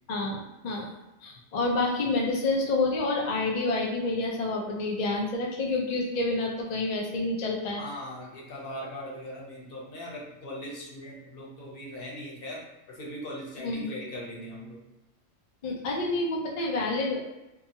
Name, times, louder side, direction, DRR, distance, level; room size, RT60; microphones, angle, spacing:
voice 1, 0.1-0.9 1.2-7.8 13.6-13.9 15.6-17.2, left 2 dB, 85° left, -1 dB, 0.3 m, -28 dB
voice 2, 7.8-12.6 12.9-14.8, equal, 50° left, -3 dB, 0.9 m, -40 dB
2.7 x 2.2 x 2.7 m, 0.98 s
omnidirectional pair, 1.3 m